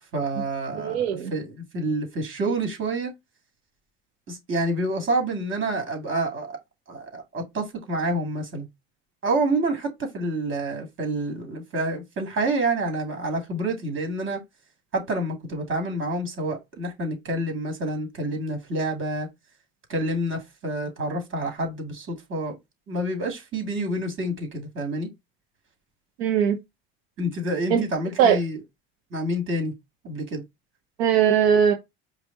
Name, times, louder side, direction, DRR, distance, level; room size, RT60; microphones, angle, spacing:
voice 1, 0.1-3.1 4.3-6.6 6.9-8.7 9.2-14.4 14.9-19.3 19.9-22.6 22.9-25.1 27.2-28.6 29.1-29.7 30.0-30.4, right 1 dB, 40° right, 2.6 m, -28 dB
voice 2, 0.7-1.3 26.2-26.6 27.7-27.8 28.2-28.4 31.0-31.7, right 8 dB, 85° right, 0.9 m, -20 dB
5.0 x 2.6 x 3.9 m
supercardioid pair, 85°, 30 cm